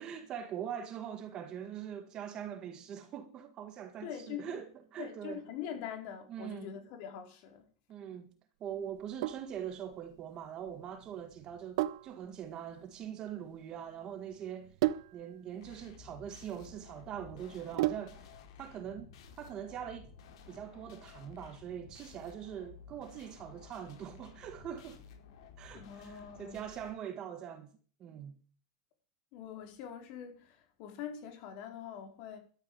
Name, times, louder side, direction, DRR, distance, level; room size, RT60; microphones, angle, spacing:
voice 1, 0.0-5.4 6.3-6.7 7.9-8.3 8.6-14.7 15.1-18.3 18.6-19.1 19.4-20.1 20.5-25.0 25.6-27.7 28.0-28.3, right 9 dB, 25° right, 1.8 m, -43 dB
voice 2, 4.0-4.6 5.0-7.6 25.7-26.7 29.3-32.4, left 8 dB, 45° left, 4.4 m, -44 dB
Sink (filling or washing), 8.9-18.4, right 15 dB, 60° right, 0.6 m, -38 dB
sound 1, 15.6-26.9, left 6 dB, 70° left, 4.7 m, -54 dB
12.5 x 9.9 x 8.7 m
supercardioid pair, 170°, 3 cm